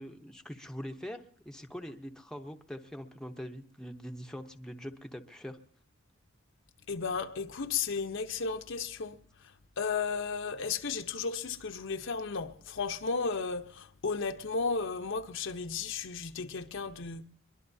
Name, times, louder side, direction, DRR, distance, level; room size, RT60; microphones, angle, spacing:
voice 1, 0.0-5.6, equal, 5° left, 0.8 m, -43 dB
voice 2, 6.9-9.2 9.8-17.2, left 5 dB, 65° left, 0.9 m, -34 dB
23.0 x 22.5 x 2.7 m
head